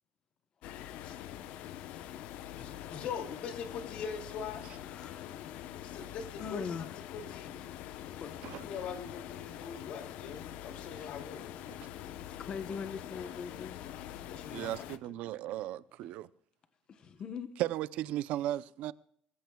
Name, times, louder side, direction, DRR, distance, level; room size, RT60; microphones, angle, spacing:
sound 1, 0.6-15.0, left 11 dB, 80° left, 0.9 m, -44 dB
voice 1, 2.6-4.6 5.8-7.6 8.6-11.7 12.7-13.7 14.3-15.2, left 6 dB, 60° left, 2.5 m, -43 dB
voice 2, 4.9-5.3 6.4-6.9 8.2-8.9 12.2-13.8 16.9-17.5, left 6 dB, 40° left, 1.0 m, -42 dB
voice 3, 14.5-16.3 17.6-18.9, right 14 dB, 75° right, 0.6 m, -35 dB
23.5 x 15.0 x 2.3 m
cardioid pair, 140°, 2 cm